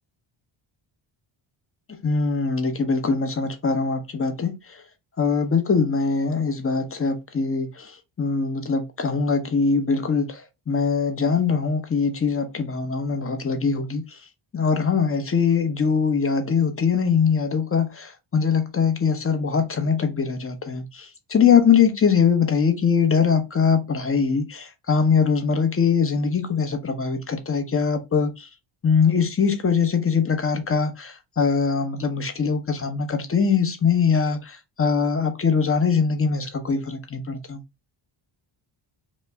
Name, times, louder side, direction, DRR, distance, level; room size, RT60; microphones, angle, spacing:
voice 1, 2.0-4.8 5.2-14.1 14.5-28.5 28.8-37.6, left 5 dB, 25° left, 0.8 m, -22 dB
5.2 x 2.1 x 3.5 m
wide cardioid pair, 135°, 50 cm